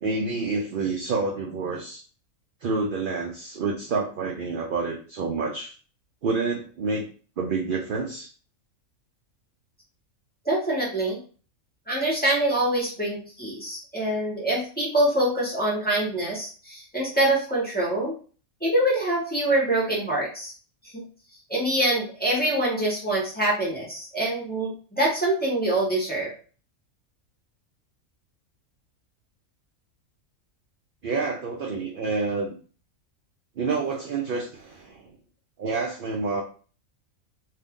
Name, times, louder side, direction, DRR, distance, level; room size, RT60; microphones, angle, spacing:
voice 1, 0.0-2.0 2.6-5.7 6.2-7.1 7.4-8.3 31.0-32.6 33.6-35.1 35.6-36.4, right 4 dB, 60° right, 0 dB, 0.6 m, -28 dB
voice 2, 10.4-11.2 11.9-18.2 18.6-20.5 20.9-21.0 21.5-26.3, right 1 dB, 10° left, -6 dB, 1.1 m, -25 dB
2.6 x 2.6 x 3.5 m, 0.38 s
omnidirectional pair, 1.4 m